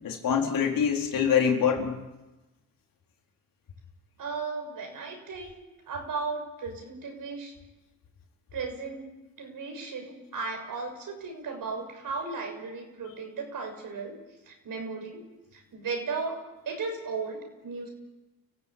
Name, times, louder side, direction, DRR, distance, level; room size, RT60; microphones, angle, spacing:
voice 1, 0.0-2.0, left 7 dB, 70° left, 1 dB, 4.3 m, -25 dB
voice 2, 4.2-7.5 8.5-9.1 9.4-14.1 14.5-15.2 15.5-17.9, right 4 dB, 65° right, 4 dB, 6.8 m, -36 dB
30.0 x 15.5 x 8.8 m, 1.1 s
cardioid pair, 75°, 35 cm